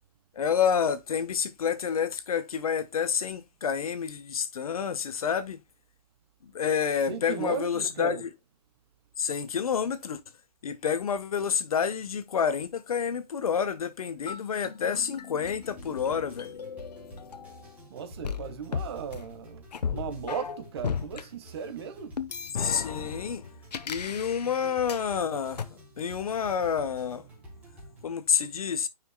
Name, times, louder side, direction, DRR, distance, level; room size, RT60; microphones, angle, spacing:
voice 1, 0.3-5.6 6.4-8.3 9.2-10.2 10.6-16.5 22.6-23.4 23.9-27.2 28.0-28.9, left 7 dB, 60° left, 1.3 m, -29 dB
voice 2, 7.1-8.2 17.9-22.2 27.6-27.7, right 7 dB, 40° right, 1.5 m, -36 dB
sound 1, 14.3-17.8 18.2-21.2 22.2-25.1 25.6-25.7, left 6 dB, 80° left, 1.1 m, -36 dB
sound 2, 15.4-28.1, right 1 dB, 5° right, 3.4 m, -49 dB
9.6 x 6.0 x 2.3 m
hypercardioid pair, 160°, 21 cm